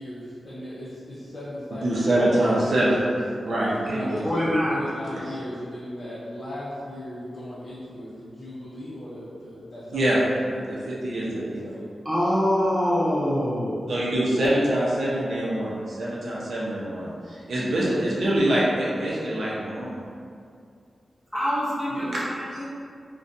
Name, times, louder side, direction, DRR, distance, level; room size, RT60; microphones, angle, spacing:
voice 1, 0.0-3.1 3.9-10.7 11.2-11.8 17.8-18.3 21.9-22.1, left 1 dB, 55° left, -10 dB, 0.5 m, -37 dB
voice 2, 1.8-3.0 3.4-4.2 9.9-10.2 10.6-11.6 13.9-20.0, right 1 dB, 75° right, -7 dB, 0.6 m, -24 dB
voice 3, 4.2-4.8 12.0-13.9 21.3-22.6, equal, 10° right, -8 dB, 0.7 m, -24 dB
2.4 x 2.2 x 2.5 m, 2.3 s
wide cardioid pair, 85°, 0 cm